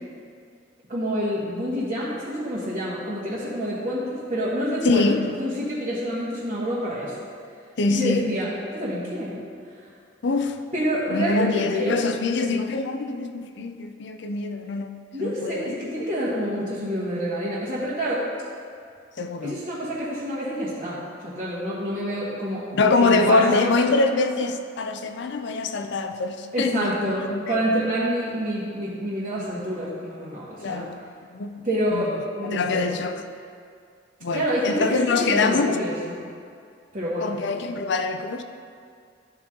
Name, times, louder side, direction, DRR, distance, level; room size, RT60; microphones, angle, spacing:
voice 1, 0.9-7.1 7.9-9.4 9.7-9.8 10.7-12.1 15.1-18.3 19.4-23.8 26.5-30.9 31.6-32.9 34.3-36.2 36.9-37.4, equal, 40° right, -10 dB, 1.5 m, -27 dB
voice 2, 4.8-5.2 7.8-8.3 10.2-10.6 11.1-14.9 15.2-15.8 19.2-19.6 22.7-27.6 30.6-31.0 31.3-31.6 31.9-32.1 32.5-33.2 34.2-35.8 37.2-38.4, left 3 dB, 65° left, 7 dB, 0.5 m, -24 dB
13.0 x 4.4 x 3.8 m, 2.3 s
head